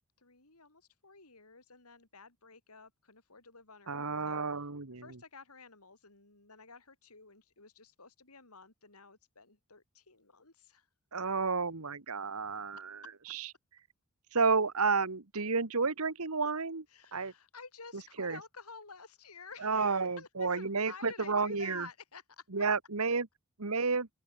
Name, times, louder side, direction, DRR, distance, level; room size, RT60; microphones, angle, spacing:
voice 1, 0.2-4.4 5.0-10.9 16.9-22.6, left 4 dB, 85° left, 5.6 m, -52 dB
voice 2, 3.9-5.0 11.1-13.0 13.3-13.5 14.3-16.8 17.1-17.3 18.2-18.4 19.6-21.9 22.5-23.3 23.6-24.1, right 4 dB, 80° right, 1.5 m, -31 dB
open air
head